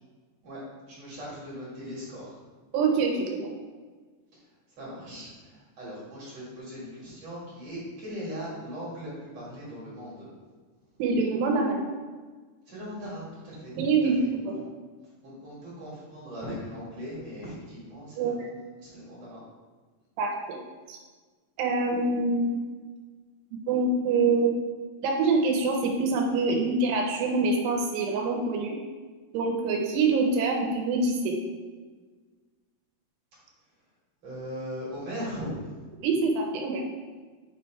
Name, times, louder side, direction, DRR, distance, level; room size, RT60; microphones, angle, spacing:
voice 1, 0.9-2.4 4.8-10.3 12.7-13.7 14.0-14.3 14.5-14.7 15.2-18.5 18.8-19.4 34.2-35.7, equal, 45° right, -8 dB, 2.7 m, -39 dB
voice 2, 2.7-3.5 11.0-11.8 13.8-14.5 18.2-18.5 20.2-20.6 20.9-21.0 21.6-22.7 23.7-24.6 25.0-28.8 29.3-31.4 36.0-36.8, right 3 dB, 80° right, 1 dB, 2.9 m, -25 dB
8.5 x 3.3 x 4.5 m, 1.4 s
omnidirectional pair, 4.9 m